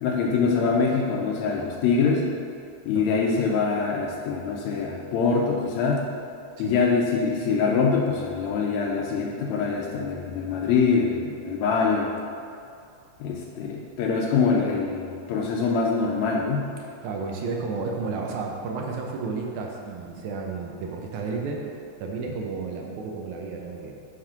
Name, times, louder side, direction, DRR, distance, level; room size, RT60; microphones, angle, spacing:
voice 1, 0.0-2.3 2.9-6.1 6.6-12.1 13.2-16.7, left 5 dB, 80° left, -1 dB, 1.8 m, -24 dB
voice 2, 3.0-3.3 6.6-6.7 17.0-21.6 22.0-24.0, right 4 dB, 75° right, 0 dB, 2.0 m, -32 dB
7.4 x 3.4 x 5.8 m, 2.4 s
omnidirectional pair, 3.6 m